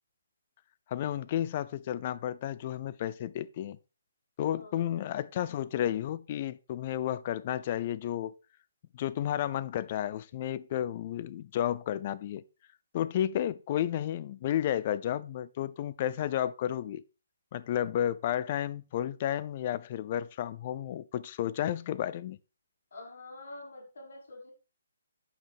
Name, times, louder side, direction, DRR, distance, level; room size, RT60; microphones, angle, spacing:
voice 1, 0.9-3.8 4.4-8.3 8.9-12.4 12.9-17.0 17.5-22.4, left 11 dB, 30° left, 0.4 m, -32 dB
voice 2, 4.5-5.0 22.9-24.5, left 2 dB, 65° left, 6.1 m, -47 dB
9.7 x 8.4 x 3.6 m
hypercardioid pair, 170°, 0 cm